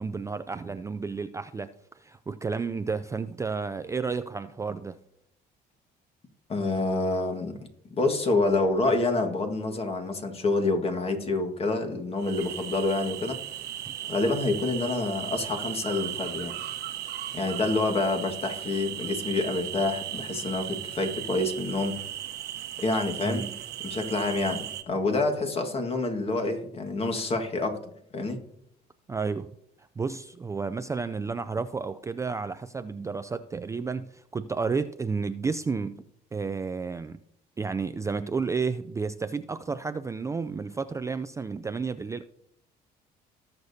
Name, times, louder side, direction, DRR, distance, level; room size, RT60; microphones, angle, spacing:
voice 1, 0.0-5.0 13.9-14.0 23.2-23.6 29.1-29.5 30.0-36.0 36.3-37.2 37.6-42.2, right 4 dB, 20° right, 0.4 m, -31 dB
voice 2, 6.5-7.6 8.0-13.4 14.1-16.5 17.3-22.0 22.8-23.5 23.8-27.8 28.1-28.4, left 2 dB, 35° left, 1.7 m, -27 dB
sound 1, 12.2-24.8, right 12 dB, 75° right, 0.9 m, -37 dB
19.0 x 6.6 x 2.7 m
cardioid pair, 110°, 17 cm